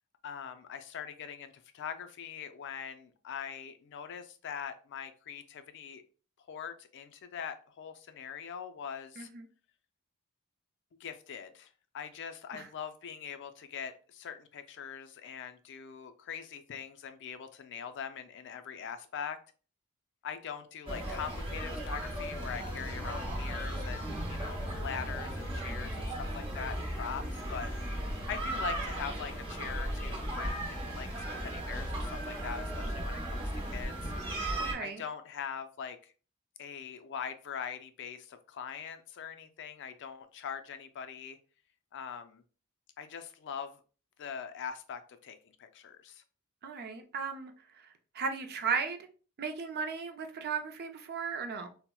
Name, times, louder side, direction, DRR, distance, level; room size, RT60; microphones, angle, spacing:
voice 1, 0.2-6.0 6.5-9.3 11.0-11.7 11.9-19.4 20.2-33.9 34.8-36.1 36.6-41.4 41.9-42.4 43.0-43.8 44.2-46.2, left 7 dB, 55° left, 0.4 m, -42 dB
voice 2, 9.2-9.5 12.5-12.7 27.2-27.3 34.6-35.0 46.6-47.5 47.8-49.0 49.4-51.7, right 5 dB, 45° right, 0.4 m, -36 dB
sound 1, 20.9-34.7, right 1 dB, 25° right, 0.8 m, -36 dB
4.2 x 2.0 x 2.2 m
head